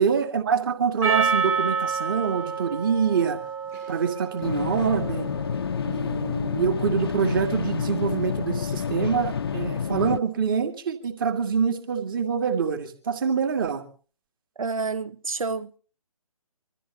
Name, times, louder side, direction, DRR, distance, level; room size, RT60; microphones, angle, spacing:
voice 1, 0.0-3.4 3.9-5.3 5.8-13.9, right 6 dB, 35° right, 2.4 m, -25 dB
Percussion, 1.0-5.6, right 6 dB, 15° right, 1.3 m, -28 dB
sound 1, 4.4-10.2, left 7 dB, 40° left, 0.6 m, -29 dB
voice 2, 14.6-15.8, right 4 dB, 65° right, 1.2 m, -29 dB
25.5 x 14.0 x 3.0 m
figure-of-eight pair, 145°, 19 cm